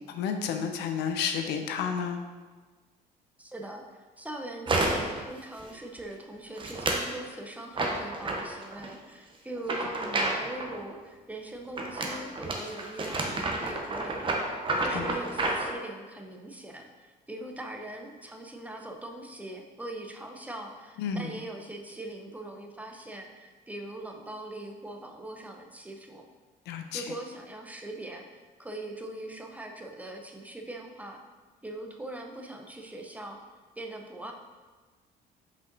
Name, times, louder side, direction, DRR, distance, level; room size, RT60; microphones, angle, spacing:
voice 1, 0.1-2.2 14.7-15.1 21.0-21.3 26.7-27.0, left 6 dB, 85° left, 5 dB, 0.7 m, -31 dB
voice 2, 3.4-26.3 26.9-31.2 31.6-33.4 33.8-34.3, right 1 dB, 10° right, 2 dB, 0.7 m, -41 dB
sound 1, 4.7-5.2 5.6-6.0 6.6-7.1 7.7-8.9 9.6-10.8 11.8-15.7, right 2 dB, 30° right, 0.9 m, -30 dB
5.5 x 5.2 x 3.9 m, 1.4 s
cardioid pair, 110°, 17 cm